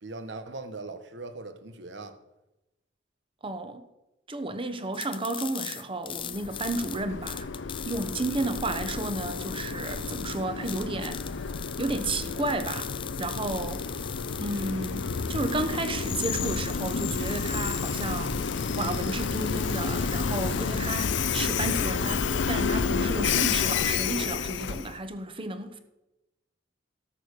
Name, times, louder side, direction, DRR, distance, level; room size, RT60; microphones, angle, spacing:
voice 1, 0.0-2.2 13.9-14.0, right 3 dB, 75° right, 1.1 m, -40 dB
voice 2, 3.4-3.9 4.3-7.5 7.8-11.2 11.8-13.9 14.4-18.4 18.7-25.8, right 2 dB, 30° right, 1.0 m, -32 dB
sound 1, 4.9-21.1, left 10 dB, 30° left, 0.4 m, -41 dB
Train, 6.2-25.0, left 5 dB, 90° left, 0.6 m, -30 dB
12.5 x 6.8 x 6.7 m
head